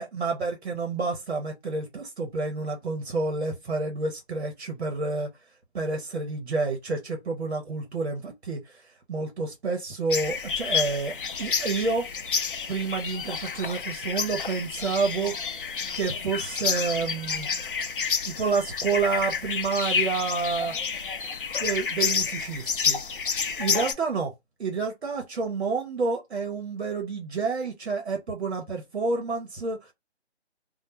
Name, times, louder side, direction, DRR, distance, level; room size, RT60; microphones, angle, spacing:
voice 1, 0.0-5.3 5.7-12.1 12.7-15.3 15.9-17.5 18.2-20.7 21.6-23.0 23.6-24.3 24.6-29.9, right 4 dB, 70° right, 0.8 m, -29 dB
sound 1, 10.1-23.9, left 6 dB, 50° left, 0.4 m, -29 dB
2.2 x 2.1 x 2.9 m
hypercardioid pair, 170°, 34 cm